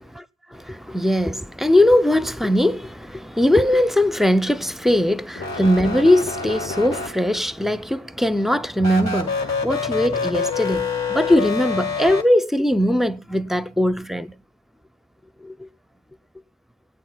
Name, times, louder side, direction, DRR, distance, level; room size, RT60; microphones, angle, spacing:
voice 1, 0.5-14.3 15.4-15.7, left 1 dB, ahead, 0.5 m, -20 dB
sound 1, 5.4-7.5 8.8-12.2, left 4 dB, 55° left, 1.8 m, -27 dB
21.5 x 9.1 x 2.3 m
wide cardioid pair, 80°, 33 cm